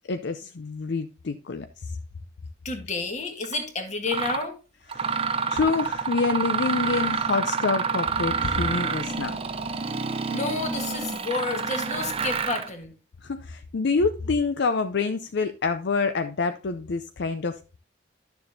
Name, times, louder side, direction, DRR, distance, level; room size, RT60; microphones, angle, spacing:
voice 1, 0.1-1.9 4.9-9.3 13.2-17.8, left 4 dB, 65° left, 0.5 m, -27 dB
voice 2, 2.7-4.6 10.3-12.9, left 3 dB, 40° left, 1.7 m, -30 dB
Mechanisms, 3.4-3.6 4.1-4.5 4.9-12.7, right 5 dB, 30° right, 0.6 m, -28 dB
11.0 x 6.9 x 2.7 m
head